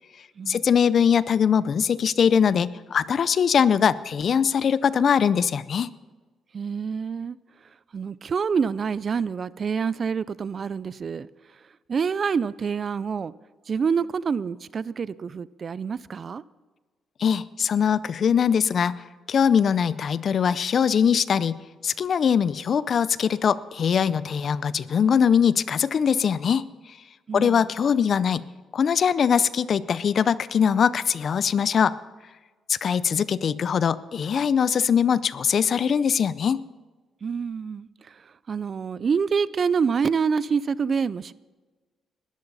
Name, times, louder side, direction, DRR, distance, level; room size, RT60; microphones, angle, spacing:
voice 1, 0.5-5.9 17.2-26.7 27.3-28.5 28.7-32.0 32.7-36.6, left 7 dB, 55° left, 17 dB, 0.5 m, -22 dB
voice 2, 6.5-7.4 7.9-11.3 11.9-13.3 13.7-16.4 27.3-27.6 37.2-41.3, right 6 dB, 45° right, 19 dB, 0.4 m, -27 dB
20.5 x 14.0 x 4.1 m, 1.3 s
cardioid pair, 90°, 0 cm